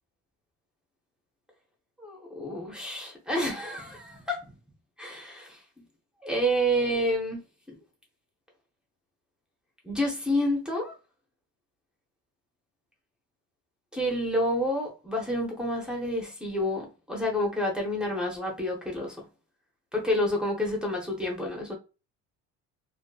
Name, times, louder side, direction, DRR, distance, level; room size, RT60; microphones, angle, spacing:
voice 1, 2.0-4.4 5.0-5.6 6.2-7.4 7.7-7.8 9.8-10.9 13.9-19.3 19.9-21.7, equal, 5° right, 0.5 m, -29 dB
2.5 x 2.5 x 2.2 m
cardioid pair, 155°, 30 cm